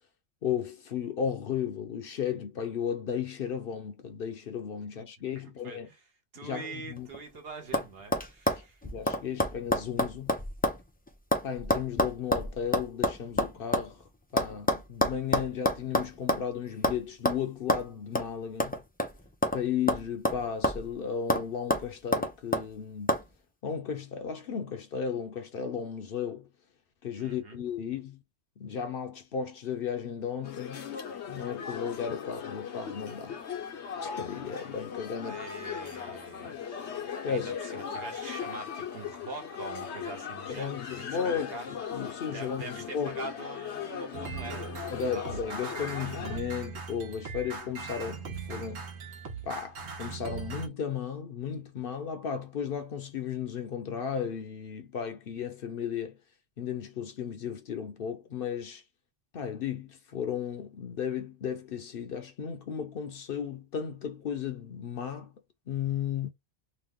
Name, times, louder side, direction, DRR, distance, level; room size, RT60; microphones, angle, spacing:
voice 1, 0.4-5.9 6.4-7.1 8.6-10.4 11.4-14.0 14.3-18.8 19.5-23.2 23.6-26.5 27.0-28.2 28.6-30.9 31.3-33.4 34.0-35.4 36.1-36.6 37.2-37.6 40.5-43.2 44.9-48.8 49.4-56.2 56.6-58.8 59.3-65.3 65.7-66.3, left 7 dB, 60° left, 0.8 m, -35 dB
voice 2, 5.3-6.0 6.3-8.8 27.2-27.6 35.2-36.5 37.3-42.0 42.3-45.7, right 3 dB, 65° right, 1.1 m, -44 dB
sound 1, 7.0-7.4 7.7-7.9 8.1-10.8 11.1-13.9 14.4-16.5 16.8-17.0 17.3-17.4 17.7-17.8 18.2-18.3 18.6-19.6 19.9-20.9 21.3-21.4 21.7-22.7 23.1-23.2, left 1 dB, 15° left, 0.3 m, -28 dB
sound 2, 30.4-46.4, left 7 dB, 85° left, 1.1 m, -39 dB
sound 3, 44.1-50.7, right 5 dB, 85° right, 1.1 m, -40 dB
3.0 x 2.1 x 3.6 m
omnidirectional pair, 1.1 m